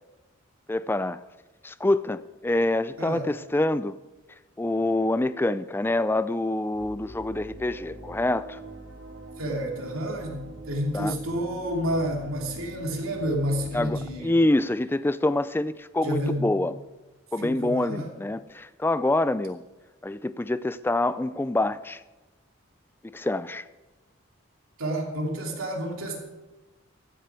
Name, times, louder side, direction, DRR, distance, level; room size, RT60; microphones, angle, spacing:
voice 1, 0.7-1.2 1.6-4.0 4.6-8.6 10.9-11.1 13.7-16.8 17.3-19.6 20.0-22.0 23.0-23.7, left 2 dB, 10° left, 0.3 m, -26 dB
sound 1, 6.7-14.2, right 1 dB, 70° right, 2.9 m, -43 dB
voice 2, 9.4-14.4 16.0-16.5 17.4-18.1 24.8-26.2, equal, 85° right, 2.9 m, -29 dB
15.0 x 10.5 x 4.9 m
head